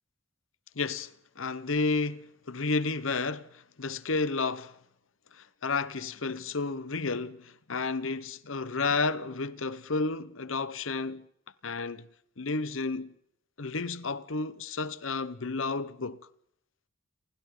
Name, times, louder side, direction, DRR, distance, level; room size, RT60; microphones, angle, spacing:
voice 1, 0.7-1.1 1.4-4.7 5.3-11.3 11.6-12.1 12.4-13.1 13.6-16.2, left 3 dB, 80° left, 1.1 m, -31 dB
29.5 x 24.0 x 3.9 m
head